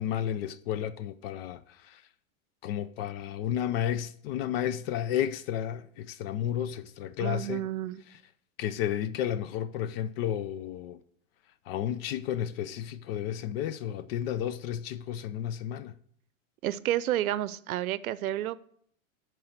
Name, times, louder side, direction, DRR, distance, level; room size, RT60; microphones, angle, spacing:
voice 1, 0.0-2.0 2.6-7.6 8.6-11.0 11.7-16.0, left 10 dB, 45° left, 0.5 m, -32 dB
voice 2, 7.2-8.0 16.6-18.7, right 13 dB, 90° right, 0.6 m, -30 dB
10.5 x 4.6 x 6.5 m
supercardioid pair, 135°, 41 cm